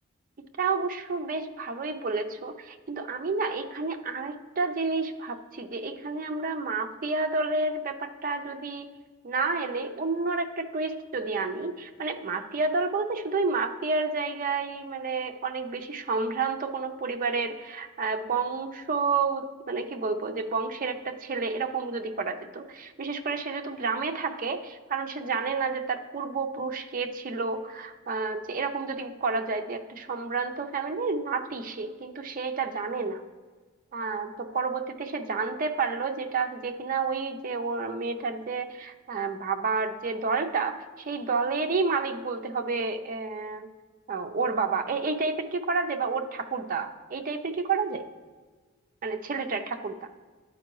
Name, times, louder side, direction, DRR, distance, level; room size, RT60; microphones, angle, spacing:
voice 1, 0.6-8.9 9.2-33.2 33.9-43.7 44.1-48.0 49.0-50.1, right 4 dB, 40° right, 6 dB, 0.5 m, -30 dB
11.0 x 4.5 x 3.0 m, 1.4 s
head